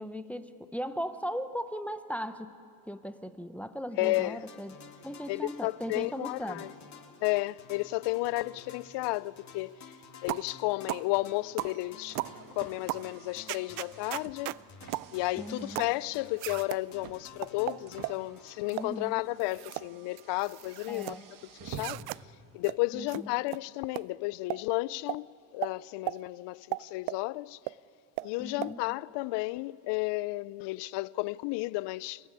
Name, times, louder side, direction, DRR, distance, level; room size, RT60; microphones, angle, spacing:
voice 1, 0.0-2.5 2.9-4.7 5.0-6.7 15.4-15.8 18.7-19.2 20.9-21.3 22.9-23.4 28.4-28.8, equal, 5° left, 0.8 m, -38 dB
voice 2, 4.0-4.4 5.3-6.7 7.2-9.8 10.2-12.2 12.5-14.6 15.1-21.2 21.6-22.0 22.5-25.3 25.5-27.6 28.2-32.3, left 20 dB, 60° left, 0.5 m, -32 dB
sound 1, 4.0-19.4, left 6 dB, 35° left, 2.4 m, -52 dB
sound 2, 10.3-10.5 10.9-11.1 11.6-11.8 12.2-12.4 12.9-13.1 13.5-14.6 14.9-15.1 15.7-16.0 16.4-16.8 17.4-18.2 18.7-18.9 19.4-19.9 20.2-21.1 21.7-22.2 22.6-22.8 23.1-23.2 23.5-23.6 23.9-24.1 24.5-24.6 25.1-25.2 25.6-25.7 26.1-26.2 26.7-27.2 27.7-27.8 28.2-28.3 28.6-28.7, right 22 dB, 80° right, 0.6 m, -36 dB
Car, 11.6-22.3, right 6 dB, 40° right, 1.5 m, -50 dB
29.5 x 15.5 x 10.0 m
cardioid pair, 120°, 50 cm